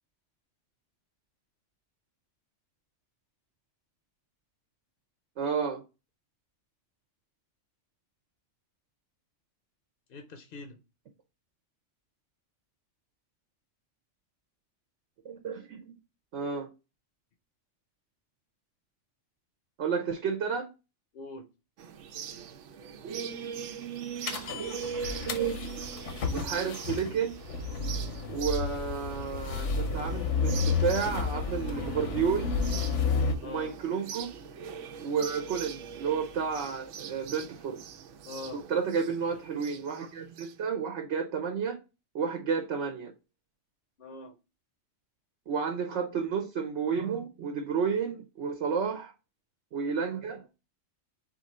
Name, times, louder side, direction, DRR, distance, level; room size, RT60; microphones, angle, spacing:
voice 1, 5.4-5.8 15.2-16.0 16.3-16.7 19.8-20.7 25.3-25.5 26.3-27.4 28.3-32.5 33.4-34.3 35.0-37.8 38.5-41.8 42.1-43.1 45.5-49.1 49.7-50.4, right 6 dB, 75° right, 1.0 m, -31 dB
voice 2, 10.1-10.8 21.1-21.5 33.4-33.7 38.2-38.6 44.0-44.3, left 3 dB, 60° left, 0.7 m, -42 dB
sound 1, 21.8-40.5, right 7 dB, 90° right, 0.9 m, -42 dB
sound 2, 24.2-33.4, left 4 dB, 80° left, 1.1 m, -31 dB
4.3 x 2.5 x 4.1 m
omnidirectional pair, 1.2 m